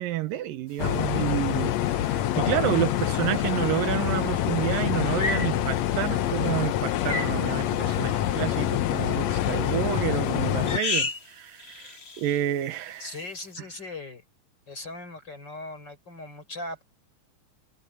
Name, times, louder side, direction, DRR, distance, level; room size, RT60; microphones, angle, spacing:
voice 1, 0.0-13.1, right 13 dB, 80° right, 2.7 m, -30 dB
sound 1, 0.8-10.8, left 12 dB, 70° left, 1.7 m, -26 dB
sound 2, 3.0-3.1 5.2-5.5 7.1-7.4 9.5-9.9 10.6-11.3 11.6-12.4, left 3 dB, 45° left, 0.8 m, -31 dB
voice 2, 13.0-14.2 14.7-16.8, left 2 dB, 30° left, 6.3 m, -39 dB
omnidirectional pair, 4.0 m